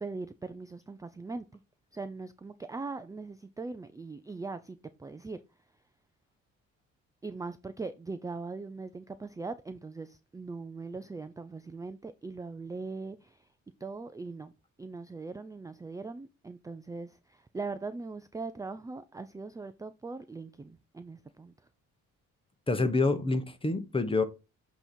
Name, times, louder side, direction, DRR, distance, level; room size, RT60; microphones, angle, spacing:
voice 1, 0.0-1.4 1.9-5.4 7.2-13.5 13.8-14.5 14.8-21.5, right 3 dB, 10° right, 0.4 m, -40 dB
voice 2, 22.7-24.2, left 3 dB, 20° left, 1.0 m, -27 dB
7.7 x 3.0 x 4.2 m
cardioid pair, 90°, 30 cm